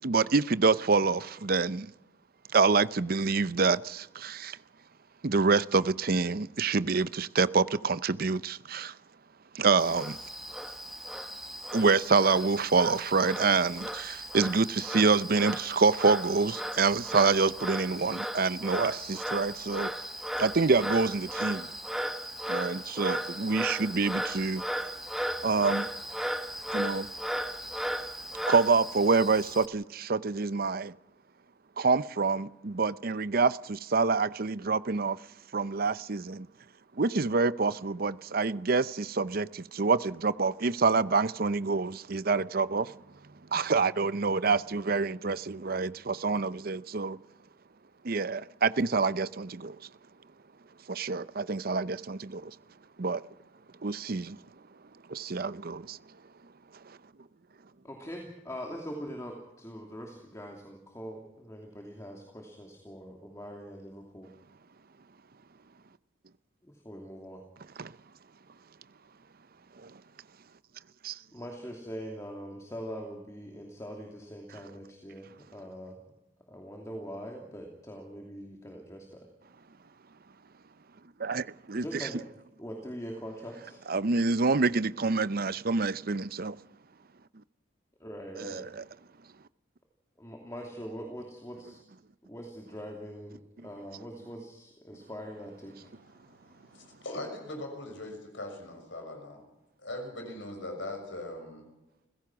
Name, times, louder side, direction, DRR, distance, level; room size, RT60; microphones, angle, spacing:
voice 1, 0.0-1.9 2.5-4.6 5.2-8.9 9.5-10.2 11.7-19.9 20.4-21.7 22.5-24.6 25.4-25.9 26.7-27.1 28.5-30.9 31.8-35.2 35.5-36.5 37.0-42.9 43.5-47.2 48.0-49.8 50.9-52.5 53.0-53.2 53.8-54.4 55.1-56.0 56.9-57.0 67.8-67.9 69.8-70.0 71.0-71.2 81.2-82.1 83.9-86.6 88.4-88.8, right 4 dB, 50° right, 0.7 m, -27 dB
Frog, 9.8-29.7, equal, ahead, 1.4 m, -36 dB
voice 2, 57.8-64.3 66.6-67.4 71.3-76.0 76.5-79.3 81.7-82.2 82.6-83.8 88.0-88.7 90.2-91.8 92.2-95.9, equal, 15° left, 2.8 m, -42 dB
voice 3, 96.2-99.4 99.8-101.7, left 1 dB, 70° left, 6.2 m, -40 dB
29.0 x 16.5 x 6.1 m
head